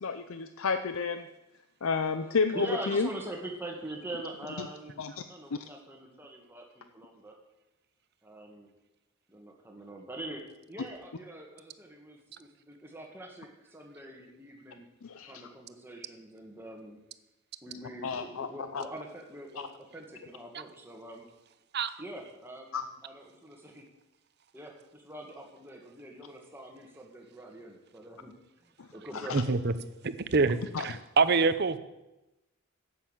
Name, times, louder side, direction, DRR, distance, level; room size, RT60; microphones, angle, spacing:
voice 1, 0.0-1.2 1.8-3.1 5.0-5.1 15.0-15.3 18.0-18.5 18.7-18.8 22.7-22.9 30.7-30.8, left 4 dB, 70° left, 9 dB, 0.6 m, -30 dB
voice 2, 2.5-7.3 8.2-8.7 9.3-10.4 10.7-14.9 15.2-17.0 17.6-21.3 22.0-22.8 23.0-23.8 24.5-29.6, right 1 dB, 10° right, 1 dB, 1.9 m, -44 dB
voice 3, 29.3-29.7 30.0-31.8, right 4 dB, 50° right, 13 dB, 0.7 m, -26 dB
11.5 x 8.5 x 7.4 m, 0.98 s
head